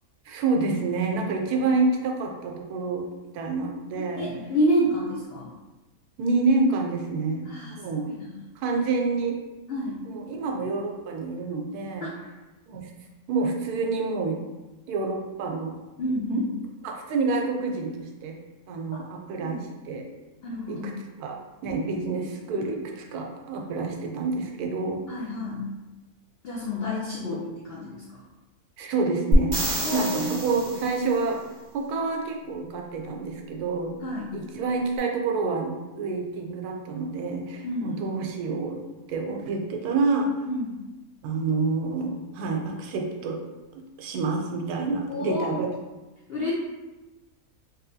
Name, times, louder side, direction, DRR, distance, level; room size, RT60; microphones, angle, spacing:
voice 1, 0.3-3.1 3.3-4.2 6.2-8.0 8.6-9.4 10.0-12.1 12.7-12.9 13.3-14.4 14.9-15.8 16.3-16.4 16.8-18.4 18.7-20.1 20.7-25.0 27.3-27.4 28.8-29.6 29.9-31.4 31.7-34.0 34.3-38.8 39.1-40.4 41.2-43.4 43.7-45.7, right 3 dB, 80° right, 2 dB, 1.1 m, -28 dB
voice 2, 4.0-5.5 7.4-8.4 9.7-10.0 12.0-12.1 16.0-16.5 19.4-19.5 20.4-20.9 25.1-25.7 26.4-28.2 29.8-30.4 34.0-34.3 37.6-38.0 40.5-40.8 45.1-45.7 46.3-46.5, left 1 dB, 80° left, -4 dB, 0.5 m, -29 dB
sound 1, 29.3-31.2 35.0-35.1, equal, 40° right, 0.6 m, -25 dB
3.2 x 2.7 x 2.7 m, 1.1 s
omnidirectional pair, 1.6 m